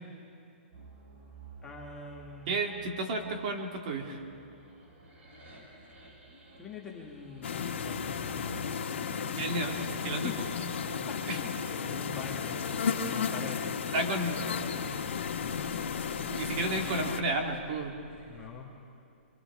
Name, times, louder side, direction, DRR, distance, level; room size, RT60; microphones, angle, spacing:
sound 1, 0.7-18.5, right 2 dB, 75° right, 7.2 m, -52 dB
voice 1, 1.6-2.5 6.6-8.5 10.2-10.3 11.1-13.6 18.2-18.7, left 5 dB, 10° left, -3 dB, 1.5 m, -44 dB
voice 2, 2.5-4.2 9.3-10.5 11.3-11.4 13.9-14.4 16.3-17.9, right 2 dB, 35° right, 3 dB, 2.2 m, -32 dB
sound 2, 7.4-17.2, left 6 dB, 75° left, 1.7 m, -34 dB
27.0 x 25.5 x 4.8 m, 2.5 s
hypercardioid pair, 170°, 7 cm